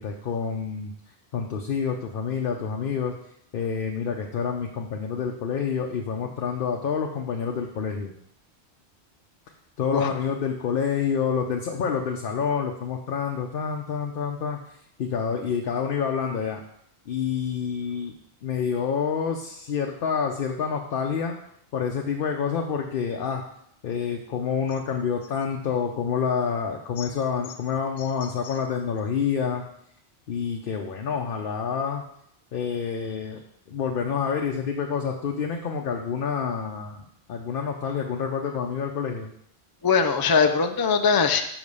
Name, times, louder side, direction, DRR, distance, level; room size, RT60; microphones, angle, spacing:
voice 1, 0.0-3.1 3.5-8.1 9.8-16.6 17.1-18.1 18.4-21.4 21.7-23.4 23.8-29.7 30.3-32.1 32.5-33.4 33.7-39.3, left 6 dB, 60° left, 2 dB, 0.8 m, -28 dB
voice 2, 39.8-41.4, left 5 dB, 35° left, 7 dB, 0.3 m, -21 dB
6.0 x 5.0 x 5.4 m, 0.73 s
omnidirectional pair, 1.1 m